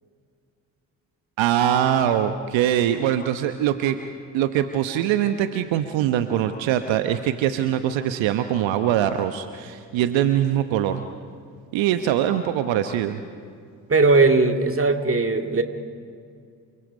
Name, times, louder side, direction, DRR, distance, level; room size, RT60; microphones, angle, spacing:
voice 1, 1.4-4.0 4.3-11.0 11.7-13.2, right 10 dB, 65° right, 9 dB, 1.1 m, -22 dB
voice 2, 13.9-15.6, right 3 dB, 25° right, 5 dB, 2.2 m, -18 dB
28.5 x 24.0 x 5.3 m, 2.2 s
figure-of-eight pair, 40°, 50 cm